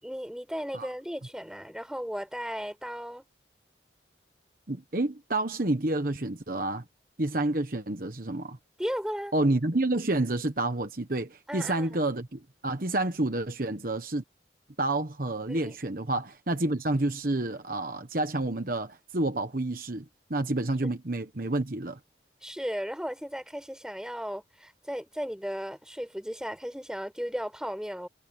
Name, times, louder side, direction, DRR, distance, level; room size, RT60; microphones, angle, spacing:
voice 1, 0.0-3.2 8.8-9.3 11.5-12.0 15.5-15.7 22.4-28.1, equal, 5° right, 4.8 m, -35 dB
voice 2, 4.7-6.8 7.2-8.6 9.3-14.2 14.8-20.0 20.3-22.0, right 2 dB, 50° right, 1.2 m, -29 dB
head